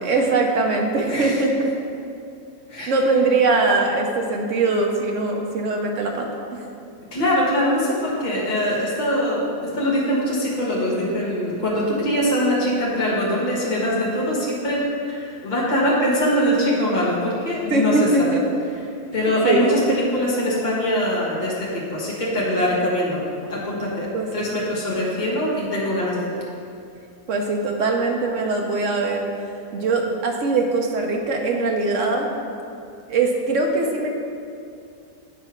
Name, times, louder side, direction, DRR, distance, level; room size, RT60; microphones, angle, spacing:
voice 1, 0.0-1.7 2.9-6.6 17.7-18.5 19.4-19.7 24.1-24.6 27.3-29.3 29.7-32.3 33.1-34.1, right 3 dB, 60° right, 2 dB, 1.1 m, -21 dB
voice 2, 7.1-18.4 19.1-23.2 23.5-26.2, equal, 30° left, -6 dB, 1.5 m, -23 dB
8.9 x 3.4 x 5.8 m, 2.5 s
omnidirectional pair, 1.6 m